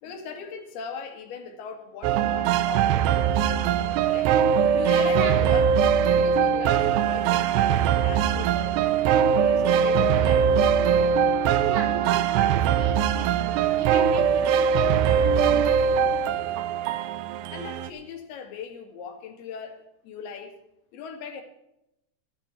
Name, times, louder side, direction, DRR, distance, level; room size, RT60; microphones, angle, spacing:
voice 1, 0.0-4.4 4.8-5.7 6.1-10.5 17.5-20.6 20.9-21.4, left 6 dB, 70° left, 6 dB, 3.7 m, -39 dB
sound 1, 2.0-17.9, right 7 dB, 90° right, 2.9 m, -21 dB
voice 2, 5.0-5.7 11.7-15.7, right 5 dB, 70° right, 6 dB, 1.9 m, -36 dB
23.0 x 8.8 x 4.4 m, 0.85 s
omnidirectional pair, 4.7 m